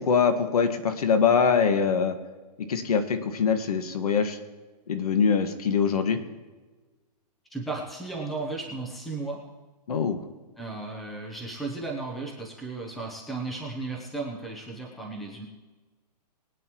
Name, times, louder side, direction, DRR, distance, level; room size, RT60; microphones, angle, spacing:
voice 1, 0.0-2.2 2.7-4.4 4.9-6.2 9.9-10.2, left 6 dB, 65° left, 7 dB, 1.7 m, -23 dB
voice 2, 7.5-9.4 10.6-15.4, right 3 dB, ahead, -1 dB, 0.8 m, -35 dB
22.5 x 9.2 x 3.1 m, 1.3 s
hypercardioid pair, 175°, 21 cm